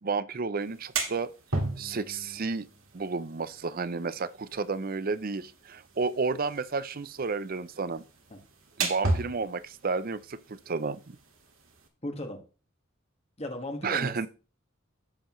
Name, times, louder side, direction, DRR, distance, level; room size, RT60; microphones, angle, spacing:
voice 1, 0.0-1.3 1.8-2.7 2.9-8.0 8.8-11.2 13.8-14.3, right 4 dB, 45° right, 0.6 m, -31 dB
sound 1, 0.6-11.9, right 3 dB, 75° right, 2.1 m, -37 dB
voice 2, 12.0-12.4 13.4-14.3, left 1 dB, 30° left, 1.8 m, -36 dB
11.5 x 7.9 x 3.2 m
head